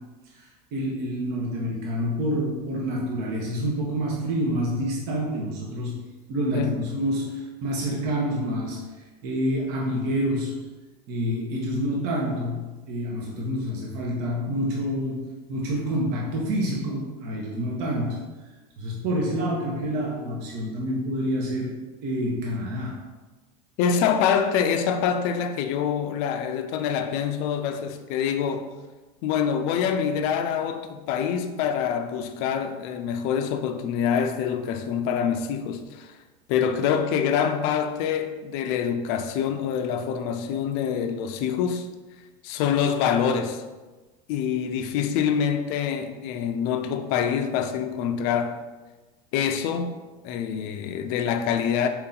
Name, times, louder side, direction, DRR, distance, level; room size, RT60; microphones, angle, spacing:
voice 1, 0.3-6.0 6.3-10.6 11.1-18.2 18.8-21.7 22.0-23.0, equal, 50° right, 0.9 m, -28 dB
voice 2, 23.8-28.7 29.2-36.2 36.5-41.9 42.4-43.6 44.3-48.6 49.3-50.0 50.2-51.9, left 7 dB, 50° left, 0.4 m, -25 dB
4.3 x 2.8 x 3.8 m
supercardioid pair, 145°, 21 cm